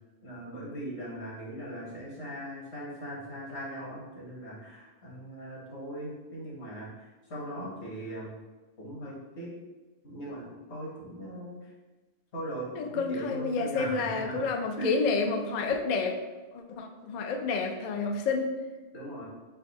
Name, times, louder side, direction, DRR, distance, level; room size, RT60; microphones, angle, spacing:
voice 1, 0.2-8.3 8.8-9.5 10.0-11.6 12.3-14.5 14.8-14.9 18.9-19.3, right 1 dB, 60° left, -4 dB, 1.4 m, -39 dB
voice 2, 12.7-16.2 16.5-18.5, left 4 dB, 85° left, 4 dB, 0.3 m, -29 dB
4.2 x 2.7 x 4.0 m, 1.2 s
omnidirectional pair, 1.3 m